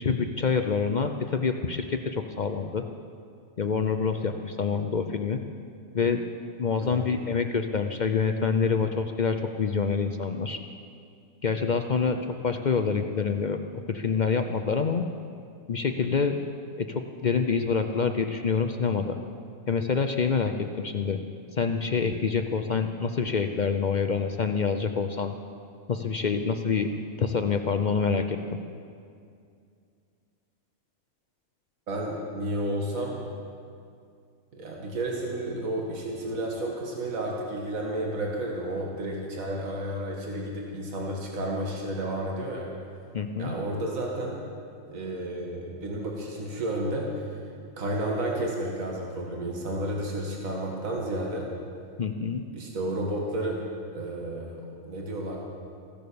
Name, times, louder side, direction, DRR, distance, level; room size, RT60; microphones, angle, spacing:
voice 1, 0.0-2.8 3.6-5.4 5.9-6.2 6.6-10.6 11.4-12.2 12.4-13.6 13.9-15.0 15.7-16.4 16.8-19.2 19.7-21.2 21.6-25.4 25.9-26.9 27.2-28.6 43.1-43.6 52.0-52.4, left 5 dB, 55° left, 6 dB, 0.5 m, -26 dB
voice 2, 31.9-33.2 34.5-42.7 43.4-44.4 44.9-47.1 47.8-51.5 52.5-53.6 53.9-55.4, right 1 dB, 75° right, -1 dB, 2.1 m, -31 dB
15.5 x 10.5 x 6.9 m, 2.3 s
omnidirectional pair, 1.4 m